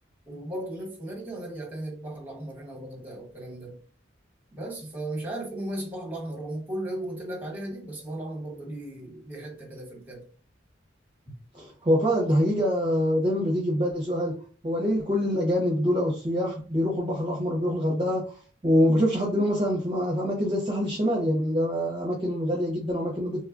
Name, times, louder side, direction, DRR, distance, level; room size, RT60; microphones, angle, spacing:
voice 1, 0.3-3.8 4.5-10.2, right 1 dB, 10° right, -1 dB, 1.1 m, -36 dB
voice 2, 11.5-14.3 14.6-18.2 18.6-23.4, equal, 25° right, -3 dB, 0.6 m, -25 dB
3.1 x 2.3 x 2.4 m, 0.40 s
head